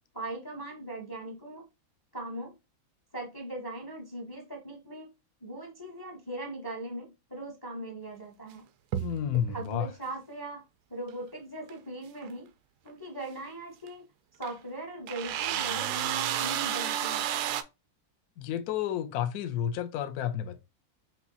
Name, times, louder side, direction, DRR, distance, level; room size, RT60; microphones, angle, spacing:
voice 1, 0.1-1.7 2.1-2.5 3.1-5.1 5.4-8.6 9.5-10.6 10.9-12.5 12.8-14.1 14.4-16.1 16.4-17.3, right 2 dB, 20° left, 0.6 m, -39 dB
sound 1, 8.9-9.7 11.7-11.8 12.2-12.3 13.9-14.0 14.4-14.5 15.1-17.6, right 10 dB, 80° right, 0.8 m, -31 dB
voice 2, 9.0-9.9 18.4-20.6, left 9 dB, 65° left, 0.9 m, -31 dB
5.7 x 2.9 x 2.7 m
omnidirectional pair, 2.2 m